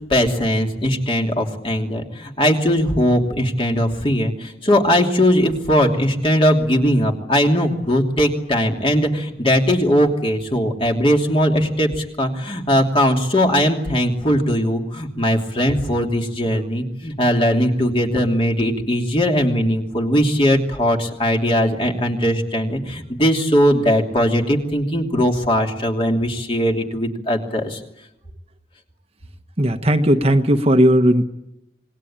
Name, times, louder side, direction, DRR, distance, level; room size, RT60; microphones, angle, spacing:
voice 1, 0.1-27.8, equal, 30° left, 2 dB, 2.9 m, -19 dB
voice 2, 29.6-31.3, equal, 35° right, 6 dB, 1.2 m, -16 dB
27.0 x 20.0 x 8.9 m, 0.90 s
head